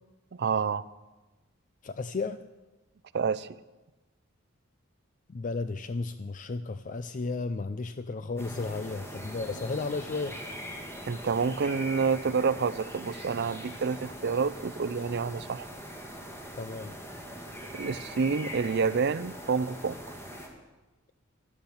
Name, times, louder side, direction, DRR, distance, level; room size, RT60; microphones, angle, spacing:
voice 1, 0.3-0.8 3.1-3.5 11.1-15.7 17.7-20.0, right 5 dB, 55° right, 17 dB, 0.5 m, -28 dB
voice 2, 1.8-2.5 5.3-10.4 16.6-16.9, left 3 dB, 40° left, 11 dB, 0.4 m, -34 dB
sound 1, 8.4-20.5, equal, 10° left, 2.2 m, -42 dB
12.5 x 12.0 x 7.1 m, 1.1 s
head